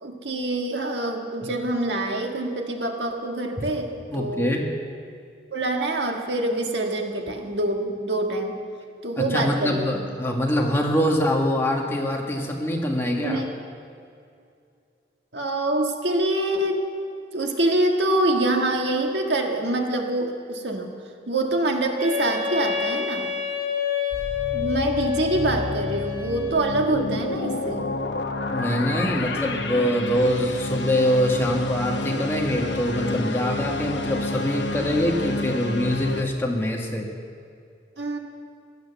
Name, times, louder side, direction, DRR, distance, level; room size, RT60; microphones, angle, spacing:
voice 1, 0.0-4.6 5.5-8.5 9.0-10.0 13.1-13.5 15.3-16.9 17.3-20.9 21.3-23.3 24.5-27.9 38.0-38.2, right 1 dB, 70° right, 2 dB, 1.7 m, -25 dB
voice 2, 4.1-4.6 9.2-13.4 28.5-37.1, equal, 15° left, 0 dB, 1.5 m, -24 dB
Wind instrument woodwind instrument, 22.0-27.0, left 8 dB, 40° right, 3.7 m, -28 dB
sound 1, 24.1-36.2, left 2 dB, 70° left, 1.0 m, -30 dB
17.0 x 12.0 x 7.0 m, 2.4 s
head